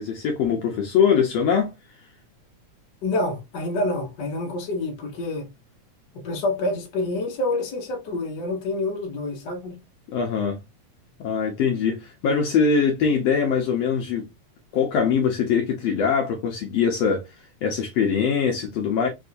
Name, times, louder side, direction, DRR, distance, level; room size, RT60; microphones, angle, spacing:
voice 1, 0.0-1.7 10.1-10.6 11.2-14.3 14.7-17.2 17.6-19.1, left 6 dB, 70° left, 1.8 m, -22 dB
voice 2, 3.0-5.5 6.1-9.8, left 2 dB, 45° left, 1.6 m, -27 dB
4.6 x 2.7 x 2.5 m
omnidirectional pair, 3.3 m